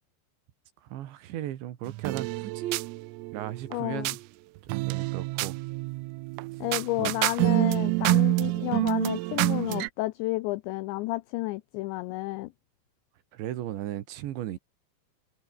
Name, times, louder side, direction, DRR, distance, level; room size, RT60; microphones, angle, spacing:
voice 1, 0.8-2.9 3.3-4.2 4.9-5.6 7.0-7.2 13.3-14.6, right 12 dB, 70° right, 3.6 m, -36 dB
sound 1, 1.9-4.2 4.7-9.9, right 21 dB, 85° right, 3.4 m, -28 dB
voice 2, 3.7-4.1 6.6-12.5, left 20 dB, 85° left, 2.5 m, -31 dB
omnidirectional pair, 5.9 m